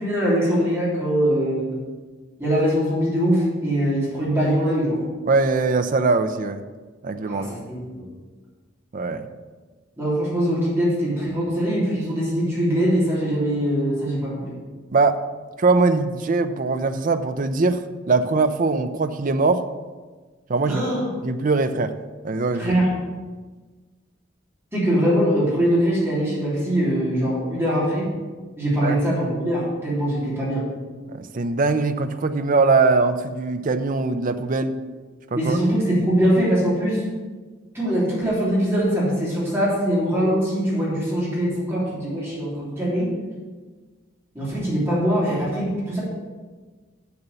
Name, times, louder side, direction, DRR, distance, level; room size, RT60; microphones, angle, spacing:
voice 1, 0.0-1.7 2.4-5.0 7.3-8.0 10.0-14.5 20.7-21.0 22.6-22.9 24.7-28.1 28.6-30.6 35.3-37.0 37.7-43.1 44.3-46.0, equal, 10° right, -8 dB, 3.2 m, -22 dB
voice 2, 5.3-6.6 7.0-7.5 8.9-9.3 14.9-15.2 15.6-19.6 20.5-20.8 21.2-21.9 22.2-22.7 28.8-29.0 31.1-34.8 35.3-35.6, right 3 dB, 40° right, 9 dB, 0.5 m, -21 dB
6.9 x 6.8 x 6.9 m, 1.4 s
head